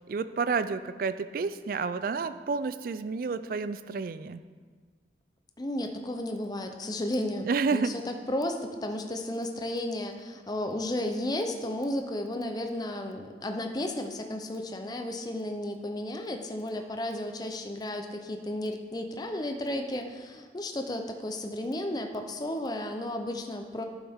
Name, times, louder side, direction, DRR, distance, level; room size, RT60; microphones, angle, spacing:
voice 1, 0.0-4.4 7.4-7.9, right 4 dB, 50° right, 12 dB, 0.3 m, -30 dB
voice 2, 5.6-23.8, left 1 dB, 20° left, 5 dB, 0.5 m, -33 dB
11.0 x 7.1 x 3.6 m, 1.5 s
head